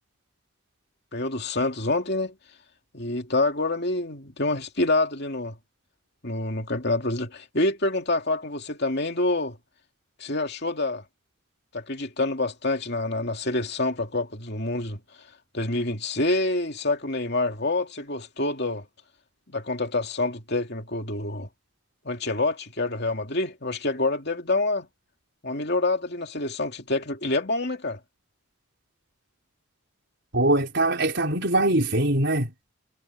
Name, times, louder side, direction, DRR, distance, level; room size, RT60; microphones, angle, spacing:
voice 1, 1.1-2.3 2.9-5.6 6.2-9.6 10.2-11.0 11.7-15.0 15.5-18.8 19.5-21.5 22.0-24.9 25.4-28.0, left 2 dB, 50° left, 2.7 m, -27 dB
voice 2, 30.3-32.5, right 1 dB, 55° right, 5.3 m, -22 dB
head